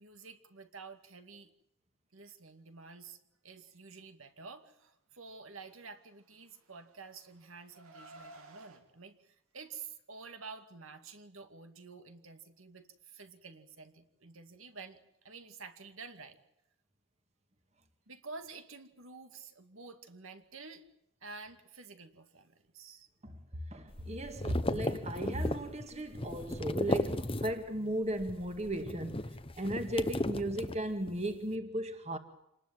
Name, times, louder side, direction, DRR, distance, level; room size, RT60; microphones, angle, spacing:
voice 1, 0.0-1.5 2.1-16.4 18.1-20.9 21.2-23.1, right 4 dB, 70° right, 2.3 m, -50 dB
Car, 6.3-8.8, right 2 dB, 90° right, 3.2 m, -55 dB
voice 2, 23.2-32.2, right 1 dB, 30° right, 2.0 m, -36 dB
sound 1, 23.9-27.8 28.1-31.2, left 1 dB, 25° left, 0.9 m, -36 dB
27.0 x 20.0 x 7.6 m
head